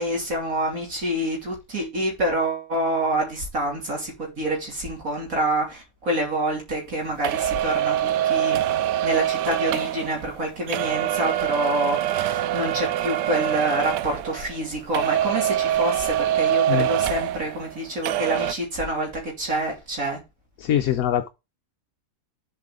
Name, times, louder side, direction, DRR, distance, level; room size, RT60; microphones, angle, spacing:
voice 1, 0.0-8.6 9.0-20.2, right 1 dB, 55° right, 3.5 m, -27 dB
sound 1, 7.2-14.7 14.9-17.8 18.0-18.5, right 12 dB, 90° right, 1.3 m, -24 dB
voice 2, 20.6-21.3, left 11 dB, 65° left, 1.0 m, -22 dB
7.9 x 5.6 x 5.0 m
omnidirectional pair, 1.8 m